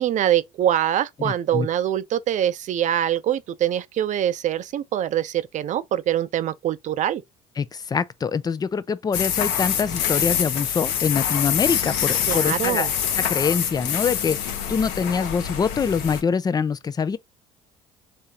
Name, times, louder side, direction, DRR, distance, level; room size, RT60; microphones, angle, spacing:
voice 1, 0.0-7.2 12.3-12.9, right 11 dB, 50° right, 0.5 m, -24 dB
voice 2, 1.2-1.7 7.6-12.9 13.2-17.2, left 6 dB, 25° left, 0.4 m, -24 dB
sound 1, 9.1-16.2, left 8 dB, 80° left, 0.9 m, -25 dB
3.5 x 2.8 x 2.8 m
supercardioid pair, 75°, 16 cm